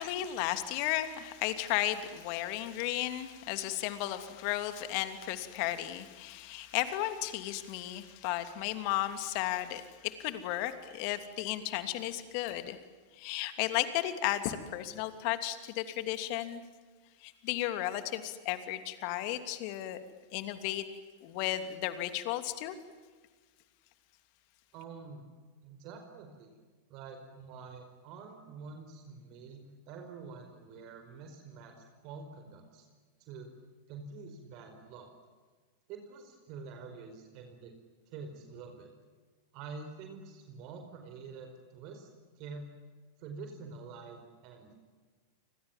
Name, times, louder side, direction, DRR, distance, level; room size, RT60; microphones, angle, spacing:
voice 1, 0.0-12.8 13.2-16.6 17.2-20.0 20.3-20.8 21.2-22.7, left 14 dB, 50° left, 9 dB, 2.9 m, -34 dB
voice 2, 24.7-25.3 25.6-26.5 26.9-32.9 33.2-33.5 33.9-35.1 35.9-37.7 38.1-38.9 39.5-42.7 43.2-44.8, right 4 dB, 45° right, 5 dB, 4.9 m, -47 dB
30.0 x 25.5 x 7.4 m, 1.4 s
figure-of-eight pair, 95°, 0 cm